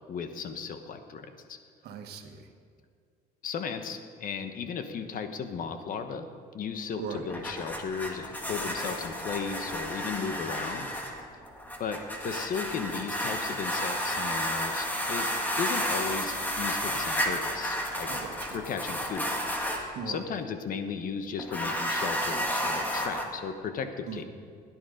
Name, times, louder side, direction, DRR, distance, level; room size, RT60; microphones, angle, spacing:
voice 1, 0.1-1.6 3.4-6.3 6.5-10.9 11.8-15.3 15.6-18.1 18.5-24.2, left 6 dB, 55° left, 8 dB, 1.2 m, -35 dB
voice 2, 1.8-2.5 7.0-7.3 18.1-18.6 19.9-20.3 24.1-24.2, right 6 dB, 70° right, 5 dB, 1.5 m, -39 dB
sound 1, 7.2-19.9 21.4-23.3, equal, 10° left, 2.0 m, -32 dB
17.0 x 10.5 x 5.1 m, 2.1 s
cardioid pair, 110°, 17 cm